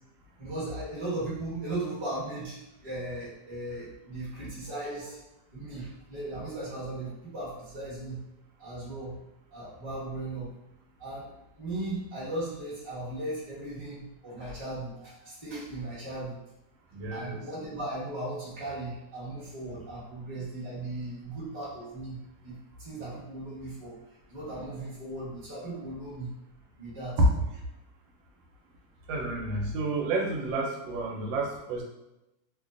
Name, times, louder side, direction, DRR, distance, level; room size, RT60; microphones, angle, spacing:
voice 1, 0.4-5.2 5.5-8.2 8.6-9.2 9.5-10.5 11.0-16.4 17.1-23.9 24.3-26.3 26.8-27.2, right 2 dB, 20° right, -9 dB, 0.8 m, -37 dB
voice 2, 4.7-5.1 16.9-17.4 27.2-27.3 29.1-31.8, right 2 dB, 85° right, -1 dB, 1.3 m, -29 dB
3.0 x 2.2 x 2.4 m, 0.93 s
omnidirectional pair, 2.0 m